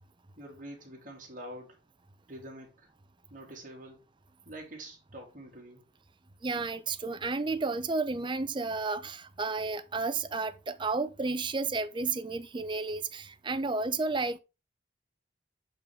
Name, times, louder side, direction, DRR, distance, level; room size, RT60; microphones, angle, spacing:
voice 1, 0.4-1.8 2.3-2.9 3.3-4.0 4.4-5.8, right 1 dB, 45° right, 2.5 m, -46 dB
voice 2, 6.4-14.4, right 3 dB, 25° right, 0.6 m, -32 dB
7.1 x 5.7 x 3.6 m
head